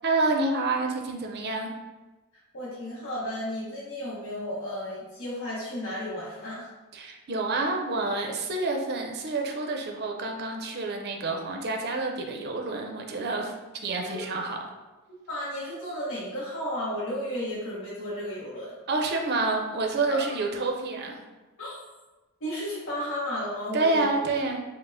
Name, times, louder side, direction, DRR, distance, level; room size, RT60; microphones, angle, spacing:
voice 1, 0.0-1.7 6.9-13.5 13.8-14.6 18.9-21.2 23.7-24.6, right 3 dB, 50° right, 2 dB, 0.5 m, -28 dB
voice 2, 2.5-6.7 14.0-14.6 15.3-18.7 21.6-21.8 22.4-24.0, left 1 dB, 60° left, -8 dB, 0.8 m, -33 dB
5.8 x 2.0 x 2.6 m, 1.2 s
head